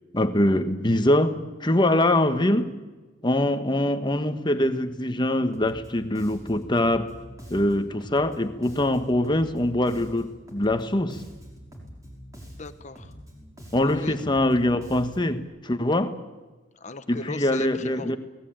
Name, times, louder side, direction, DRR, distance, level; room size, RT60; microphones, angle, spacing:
voice 1, 0.1-2.7 3.2-7.1 7.5-11.2 13.7-16.1 17.1-18.2, left 1 dB, 25° left, 8 dB, 1.4 m, -23 dB
Bass guitar, 5.5-15.4, equal, 20° right, 5.6 m, -45 dB
voice 2, 12.4-13.1 13.8-14.2 16.7-18.2, left 3 dB, 40° left, 11 dB, 1.2 m, -38 dB
27.5 x 19.0 x 9.0 m, 1.2 s
head